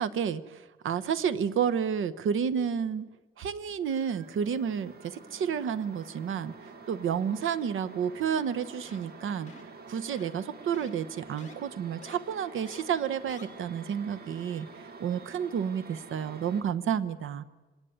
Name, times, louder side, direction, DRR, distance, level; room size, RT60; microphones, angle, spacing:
voice 1, 0.0-3.1 3.4-9.5 9.9-14.7 15.0-17.4, right 7 dB, 85° right, 13 dB, 1.0 m, -30 dB
sound 1, 3.8-16.6, right 4 dB, 50° right, 2.0 m, -48 dB
sound 2, 8.8-9.1 9.5-9.7 10.1-10.4 10.7-10.9 11.4-11.5 12.0-12.2 12.7-12.8 13.3-13.5, left 4 dB, 35° left, 2.8 m, -50 dB
25.0 x 19.0 x 9.6 m, 1.2 s
wide cardioid pair, 130°, 20 cm